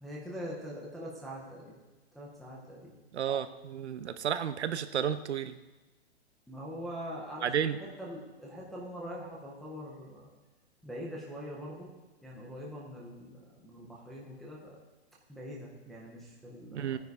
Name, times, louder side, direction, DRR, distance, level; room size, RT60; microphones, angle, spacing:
voice 1, 0.0-1.7 2.1-2.9 6.5-10.3 10.8-11.9 12.2-14.8 15.3-17.0, equal, ahead, -5 dB, 0.4 m, -43 dB
voice 2, 3.1-5.6 7.4-7.8 16.7-17.0, right 8 dB, 80° right, 11 dB, 0.9 m, -32 dB
15.5 x 9.4 x 4.6 m, 1.1 s
hypercardioid pair, 160°, 33 cm